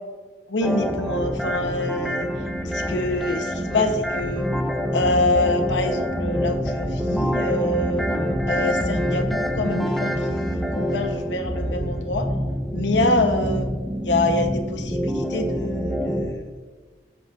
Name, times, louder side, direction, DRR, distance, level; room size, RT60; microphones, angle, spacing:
voice 1, 0.5-2.3 2.6-4.5 4.9-8.1 8.5-12.3 12.7-13.7 14.0-16.5, left 2 dB, 85° left, 5 dB, 1.0 m, -25 dB
sound 1, 0.6-16.3, equal, ahead, 0.5 m, -26 dB
15.5 x 5.9 x 2.6 m, 1.4 s
head